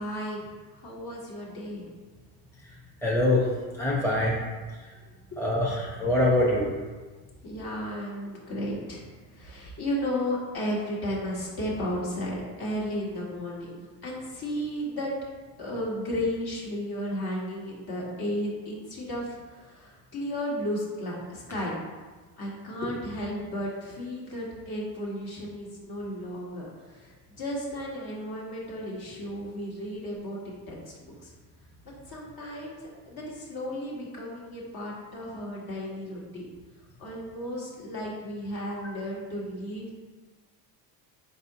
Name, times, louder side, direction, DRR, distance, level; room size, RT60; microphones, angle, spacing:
voice 1, 0.0-1.9 5.3-5.5 7.4-9.0 9.3-15.1 15.6-21.7 22.4-31.3 32.1-32.8 33.1-36.5 37.0-39.9, equal, 45° left, -4 dB, 1.5 m, -34 dB
voice 2, 3.0-3.4 3.8-4.4 5.4-6.7, left 1 dB, 5° left, -4 dB, 0.8 m, -24 dB
4.1 x 3.8 x 2.8 m, 1.3 s
hypercardioid pair, 70°, 50 cm